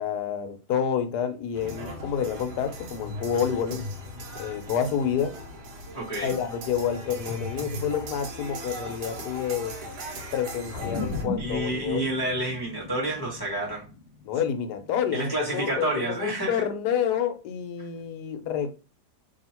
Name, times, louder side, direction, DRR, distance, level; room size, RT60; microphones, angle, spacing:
voice 1, 0.0-3.8 4.4-5.3 6.2-9.8 10.3-12.1 14.2-18.7, left 8 dB, 70° left, 1.1 m, -28 dB
sound 1, 1.5-11.2, left 1 dB, 70° right, 1.3 m, -38 dB
voice 2, 5.9-6.4 11.4-13.8 15.1-16.6 17.8-17.9, right 1 dB, 15° left, 0.8 m, -29 dB
sound 2, 10.7-15.5, left 2 dB, 90° left, 1.3 m, -37 dB
2.8 x 2.8 x 4.3 m
omnidirectional pair, 1.9 m